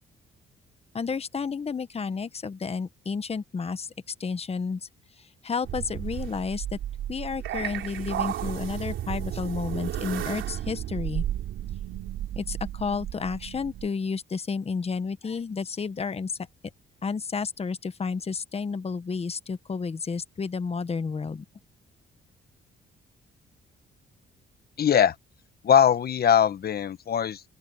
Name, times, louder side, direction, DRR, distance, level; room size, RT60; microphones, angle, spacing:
voice 1, 0.9-4.9 5.2-6.8 7.1-11.2 12.4-16.4 17.0-21.4, left 5 dB, 30° left, 1.1 m, -31 dB
sound 1, 5.6-13.9, right 11 dB, 80° right, 3.2 m, -33 dB
voice 2, 24.8-25.1 25.6-27.4, left 9 dB, 50° left, 1.2 m, -21 dB
open air
cardioid pair, 90°, 20 cm